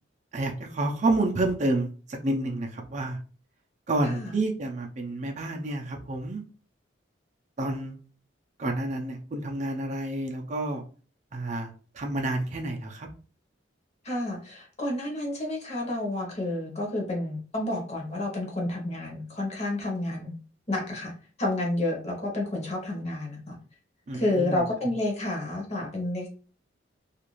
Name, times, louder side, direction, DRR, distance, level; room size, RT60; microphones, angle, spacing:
voice 1, 0.3-3.2 3.9-6.4 7.6-8.0 8.6-10.8 11.3-13.1 24.1-24.6, right 2 dB, 40° right, 2 dB, 0.4 m, -29 dB
voice 2, 14.0-20.3 20.7-21.1 21.4-23.6 24.1-26.3, left 1 dB, 35° left, 0 dB, 0.8 m, -30 dB
2.4 x 2.3 x 3.0 m, 0.39 s
head